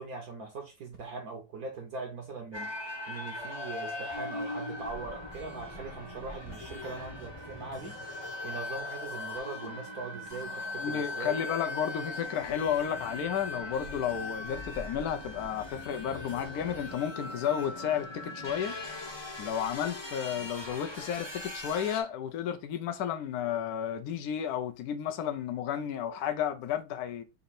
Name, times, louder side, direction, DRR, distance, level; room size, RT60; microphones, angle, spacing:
voice 1, 0.0-11.4, right 3 dB, 60° right, 1.0 m, -41 dB
sound 1, 2.5-22.0, left 2 dB, 30° left, 0.5 m, -39 dB
voice 2, 10.8-18.8 19.4-27.2, left 9 dB, 80° left, 0.8 m, -32 dB
4.2 x 2.6 x 4.1 m
omnidirectional pair, 2.4 m